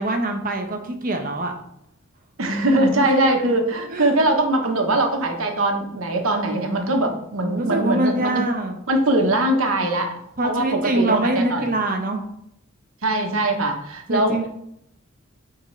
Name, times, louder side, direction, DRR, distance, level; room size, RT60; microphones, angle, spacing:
voice 1, 0.0-1.5 3.9-4.1 7.6-8.8 10.4-12.2 14.1-14.5, right 2 dB, 40° right, 4 dB, 1.0 m, -24 dB
voice 2, 2.4-8.4 8.9-11.7 13.0-14.5, right 1 dB, 75° right, 3 dB, 1.1 m, -21 dB
8.7 x 3.9 x 3.2 m, 0.76 s
head